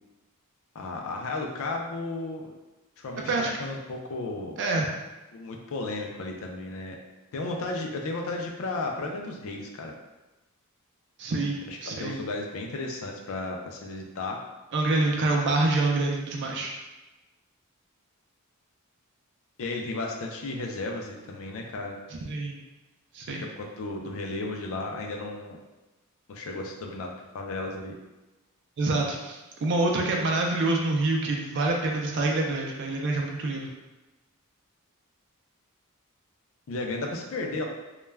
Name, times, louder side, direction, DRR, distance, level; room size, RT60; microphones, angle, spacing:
voice 1, 0.7-2.5 3.0-4.6 5.3-7.0 7.3-9.9 11.7-14.4 19.6-22.0 23.3-25.6 26.3-27.9 36.7-37.6, left 2 dB, 65° left, 1 dB, 0.4 m, -34 dB
voice 2, 4.6-4.9 11.2-12.2 14.7-16.7 22.2-22.6 23.1-23.4 28.8-33.7, right 2 dB, 55° right, 0 dB, 0.4 m, -26 dB
2.3 x 2.1 x 3.2 m, 1.1 s
head